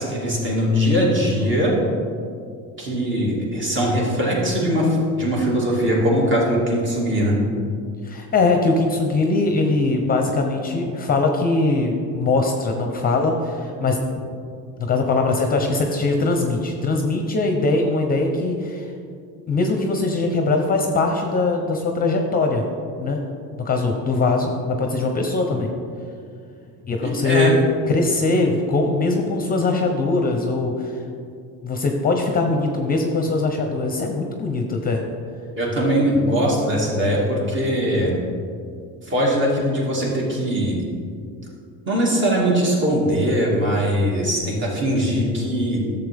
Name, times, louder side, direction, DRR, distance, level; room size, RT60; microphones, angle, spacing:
voice 1, 0.0-1.8 2.8-7.4 27.0-27.5 35.5-38.2 39.0-40.8 41.9-45.8, equal, 35° right, -3 dB, 2.3 m, -21 dB
voice 2, 8.0-14.0 14.8-18.9 19.5-22.6 23.0-23.2 23.6-25.7 26.9-27.6 27.9-30.9 31.6-35.0, left 3 dB, 25° left, 3 dB, 0.8 m, -21 dB
11.5 x 7.1 x 3.5 m, 2.3 s
cardioid pair, 130°, 34 cm